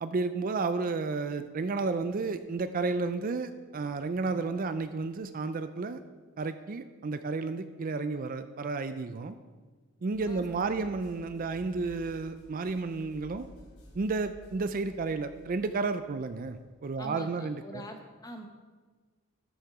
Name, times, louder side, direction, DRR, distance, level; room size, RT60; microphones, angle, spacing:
voice 1, 0.0-6.0 6.4-9.4 10.0-13.5 13.9-17.8, right 3 dB, 40° right, 11 dB, 0.4 m, -32 dB
sound 1, 10.1-16.8, equal, 65° left, 3.6 m, -54 dB
voice 2, 10.3-10.9 17.0-18.5, equal, 15° left, 4 dB, 1.0 m, -45 dB
12.5 x 6.5 x 4.8 m, 1.4 s
head